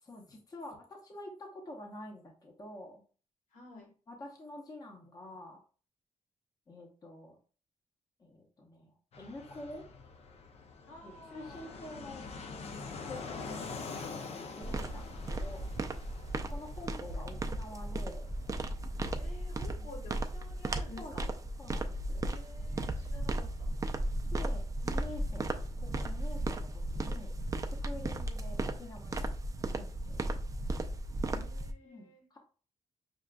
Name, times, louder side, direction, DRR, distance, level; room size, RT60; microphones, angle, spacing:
voice 1, 0.0-3.0 4.1-5.6 6.7-7.4 8.2-9.8 11.0-12.3 13.0-13.7 14.0-14.7 14.9-15.7 16.5-18.2 19.8-19.9 21.0-22.3 24.3-27.4 27.7-29.3 29.7-30.4 31.8-32.4, left 1 dB, 30° left, 0 dB, 0.9 m, -48 dB
voice 2, 3.5-3.9 10.8-11.8 14.6-15.3 19.2-21.2 22.2-23.7 31.3-32.3, left 1 dB, 85° left, 0 dB, 1.6 m, -52 dB
Fixed-wing aircraft airplane, 9.1-27.5, left 4 dB, 55° left, 0.5 m, -48 dB
sound 1, 14.6-31.7, right 1 dB, 25° right, 0.4 m, -35 dB
6.2 x 2.5 x 2.3 m, 0.39 s
cardioid pair, 125°, 13 cm